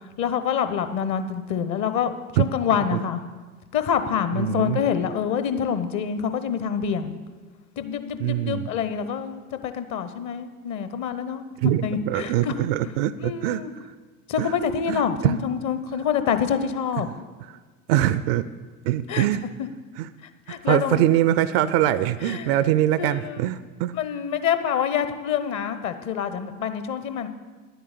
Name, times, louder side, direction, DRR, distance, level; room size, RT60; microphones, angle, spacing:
voice 1, 0.2-3.2 3.7-7.2 7.8-11.4 11.8-12.5 12.8-12.9 13.2-13.7 14.3-17.1 19.1-19.3 19.6-19.7 20.5-21.0 22.2-22.6 23.0-23.4 23.9-27.3, left 7 dB, 40° left, 10 dB, 1.0 m, -26 dB
voice 2, 4.4-4.8 8.2-8.7 11.6-13.6 14.4-14.5 14.9-15.4 17.9-18.5 18.9-19.4 20.0-20.1 20.7-23.9, right 13 dB, 45° right, 16 dB, 0.4 m, -23 dB
10.5 x 8.0 x 8.2 m, 1.4 s
figure-of-eight pair, 70°, 45 cm